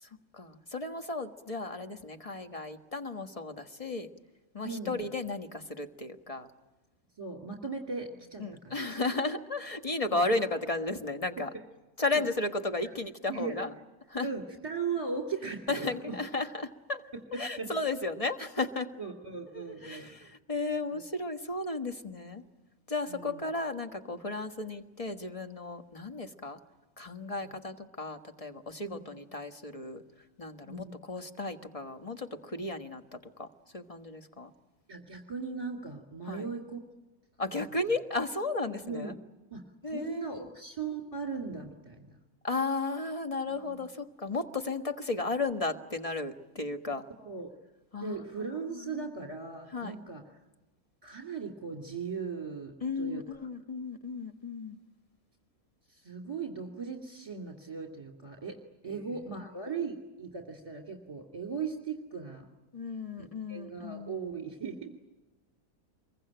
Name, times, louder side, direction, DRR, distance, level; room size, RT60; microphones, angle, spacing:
voice 1, 0.0-4.1 4.5-6.5 8.4-11.5 12.0-13.7 14.1-14.3 15.7-17.0 17.3-18.9 19.5-22.4 22.9-26.6 27.0-30.0 30.4-33.5 33.7-34.5 36.2-36.5 37.4-39.1 39.8-40.3 42.4-47.0 47.9-48.2 48.7-49.1 49.7-49.9 52.8-54.8 58.9-59.4 62.7-64.3, left 3 dB, 25° left, 6 dB, 1.5 m, -34 dB
voice 2, 7.2-9.0 12.1-12.2 13.3-13.6 14.2-16.1 17.3-17.7 19.0-20.2 20.9-21.0 23.1-23.4 27.4-27.5 28.8-29.1 30.6-30.9 34.9-36.8 38.8-39.1 39.5-42.2 43.5-43.8 47.2-47.5 48.0-50.2 51.0-53.2 55.9-58.6 58.8-62.5 63.5-64.9, right 5 dB, 20° right, 2 dB, 2.8 m, -38 dB
26.0 x 23.0 x 8.9 m, 1.1 s
omnidirectional pair, 1.6 m